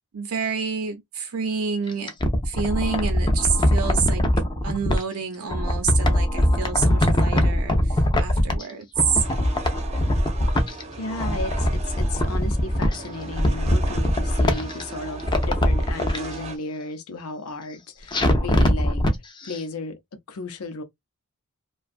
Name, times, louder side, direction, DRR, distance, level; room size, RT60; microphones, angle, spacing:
voice 1, 0.1-2.1 2.4-4.2 4.6-9.2, right 6 dB, 80° right, 0.6 m, -28 dB
sound 1, 1.9-5.0 5.5-8.7 9.0-10.8 11.1-13.0 13.3-14.8 15.2-16.2 18.1-19.1 19.5-19.6, left 1 dB, 20° left, 0.4 m, -21 dB
sound 2, 9.2-16.6, right 3 dB, 30° right, 0.5 m, -37 dB
voice 2, 11.0-19.0 19.4-20.8, left 2 dB, 75° left, 0.6 m, -34 dB
2.5 x 2.3 x 2.4 m
head